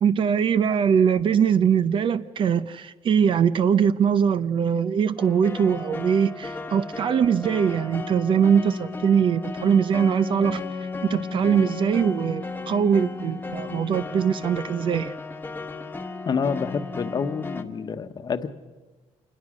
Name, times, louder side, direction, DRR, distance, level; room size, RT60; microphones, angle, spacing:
voice 1, 0.0-10.6 11.1-15.1, right 7 dB, 50° right, 0.7 m, -22 dB
sound 1, 5.2-17.6, left 4 dB, 15° left, 1.2 m, -34 dB
voice 2, 16.3-18.5, left 6 dB, 35° left, 1.1 m, -28 dB
27.0 x 20.5 x 6.3 m
cardioid pair, 140°, 11 cm